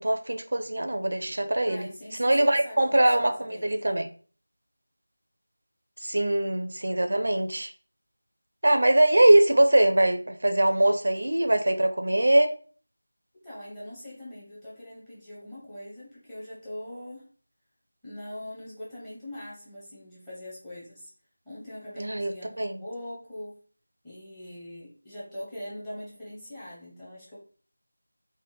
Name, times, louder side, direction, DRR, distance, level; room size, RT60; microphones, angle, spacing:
voice 1, 0.0-1.9 2.2-4.1 6.0-7.7 8.6-12.6 22.0-22.8, right 1 dB, 60° right, 0.4 m, -22 dB
voice 2, 1.6-3.9 13.3-17.3 18.0-21.1 21.4-23.6 24.0-27.4, left 1 dB, 5° left, 0.6 m, -42 dB
4.0 x 2.1 x 3.1 m
figure-of-eight pair, 180°, 0 cm